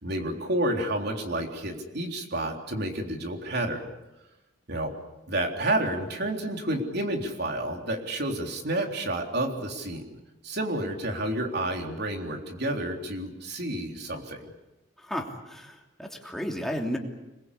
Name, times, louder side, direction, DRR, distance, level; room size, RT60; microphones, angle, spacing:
voice 1, 0.0-3.8 4.7-4.9 5.3-10.0 10.4-14.4, right 1 dB, 60° right, 3 dB, 3.7 m, -30 dB
voice 2, 15.0-17.0, equal, ahead, 1 dB, 3.0 m, -33 dB
26.5 x 21.5 x 8.4 m, 0.98 s
head